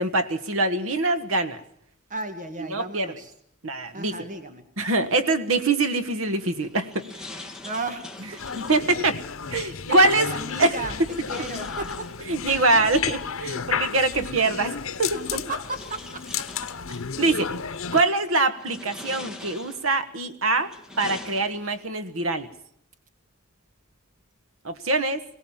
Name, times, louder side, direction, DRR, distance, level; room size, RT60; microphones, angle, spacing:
voice 1, 0.0-1.6 2.6-3.1 3.6-4.1 4.8-7.0 8.5-9.2 9.5-10.3 10.6-11.1 12.3-15.2 17.2-17.5 17.9-22.5 24.6-25.2, right 2 dB, 75° right, 10 dB, 1.5 m, -24 dB
voice 2, 2.1-3.3 3.9-4.6 7.6-8.5 9.7-11.0 11.3-12.1 15.1-16.5, right 2 dB, 40° right, 7 dB, 1.8 m, -35 dB
sound 1, 6.4-8.9 10.9-12.6 13.9-14.0 15.0-17.1 17.7-18.1 18.5-20.0 20.5-21.9, left 2 dB, 5° right, 2.0 m, -43 dB
sound 2, 8.4-18.0, left 6 dB, 80° left, 1.0 m, -32 dB
22.0 x 18.0 x 7.3 m, 0.70 s
head